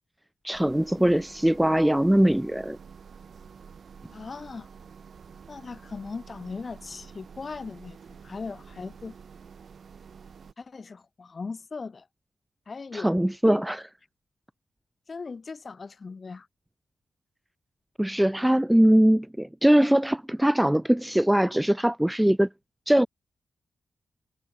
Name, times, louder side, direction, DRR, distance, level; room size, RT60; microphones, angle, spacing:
voice 1, 0.4-2.8 12.9-13.8 18.0-22.5 22.9-23.1, right 1 dB, 5° right, 0.6 m, -21 dB
sound 1, 0.5-10.5, right 6 dB, 60° right, 2.9 m, -49 dB
voice 2, 4.1-4.7 5.5-9.1 10.6-12.1 12.7-13.1 13.4-13.6 15.1-16.5 19.8-19.9, left 4 dB, 40° left, 1.0 m, -39 dB
wide cardioid pair, 130°, 0 cm